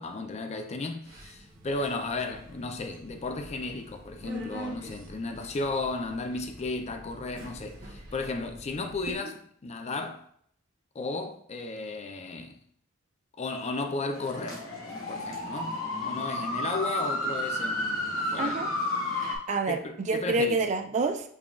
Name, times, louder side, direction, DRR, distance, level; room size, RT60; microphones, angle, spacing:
voice 1, 0.0-10.2 10.9-12.6 13.4-14.6 15.1-18.8 19.7-20.7, left 3 dB, 30° left, 0.4 m, -34 dB
Subway metro underground, 1.0-9.2, right 2 dB, 60° right, 1.1 m, -46 dB
sound 1, 14.1-19.4, left 1 dB, 90° left, 1.5 m, -31 dB
voice 2, 18.4-18.7 19.2-21.2, right 3 dB, 35° right, 0.3 m, -28 dB
6.8 x 2.3 x 2.4 m
head